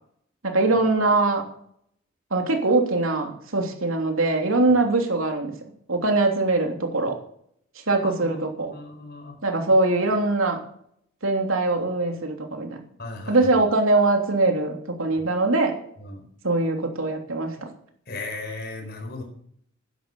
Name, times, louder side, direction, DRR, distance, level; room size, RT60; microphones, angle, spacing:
voice 1, 0.4-1.5 2.3-5.5 5.9-7.2 7.9-8.7 9.4-10.6 11.2-12.8 13.3-15.8 16.4-17.5, right 2 dB, 90° right, 3 dB, 3.2 m, -22 dB
voice 2, 8.0-9.4 13.0-13.4 16.0-16.2 18.1-19.2, left 2 dB, 55° left, 2 dB, 4.4 m, -36 dB
12.0 x 11.0 x 7.0 m, 0.67 s
head